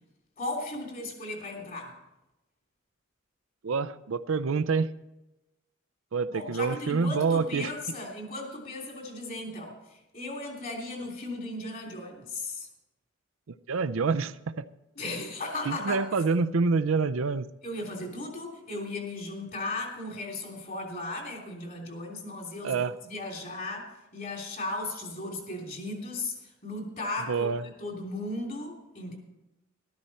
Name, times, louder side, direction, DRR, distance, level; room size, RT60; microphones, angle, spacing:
voice 1, 0.4-2.0 6.3-12.7 14.9-16.0 17.6-27.5 27.8-29.2, left 2 dB, 45° left, 0 dB, 3.1 m, -36 dB
voice 2, 3.6-4.9 6.1-7.7 13.7-14.7 15.7-17.5 22.6-22.9 27.3-27.6, right 4 dB, 75° right, 11 dB, 0.5 m, -27 dB
13.5 x 12.5 x 4.3 m, 0.97 s
head